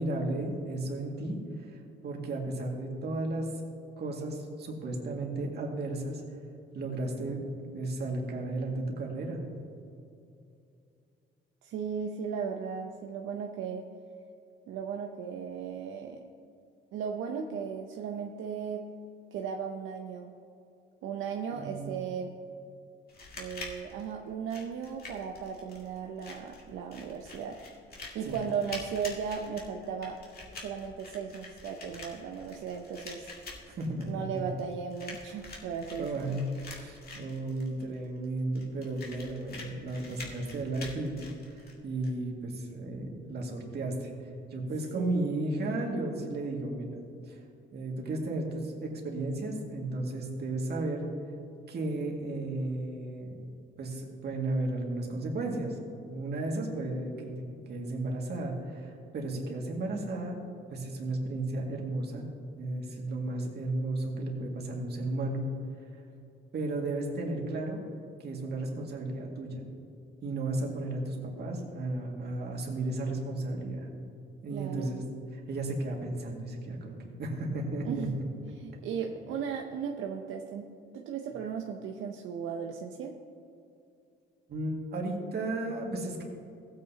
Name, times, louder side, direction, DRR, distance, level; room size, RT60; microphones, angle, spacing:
voice 1, 0.0-1.4 2.0-3.5 4.0-6.2 6.7-7.4 7.7-9.4 21.5-21.9 28.2-28.4 33.7-34.2 36.0-41.2 41.5-44.1 44.5-46.9 47.3-47.4 47.7-51.0 51.7-53.4 53.8-55.8 56.1-57.3 57.7-60.4 60.7-62.3 62.6-65.4 66.5-67.8 68.2-69.7 70.2-73.9 74.4-75.0 75.3-78.1 84.5-86.2, right 2 dB, 55° right, 0 dB, 2.1 m, -34 dB
voice 2, 11.6-13.9 14.7-16.3 16.9-18.9 19.3-20.3 21.0-22.3 23.4-27.6 28.1-30.2 30.5-33.3 34.0-36.4 44.9-45.3 74.5-75.0 77.8-78.2 78.6-83.2, right 7 dB, 80° right, 2 dB, 0.7 m, -36 dB
sound 1, 23.1-42.1, left 3 dB, 50° left, 2.3 m, -46 dB
16.0 x 8.7 x 2.8 m, 2.6 s
cardioid pair, 90°, 20 cm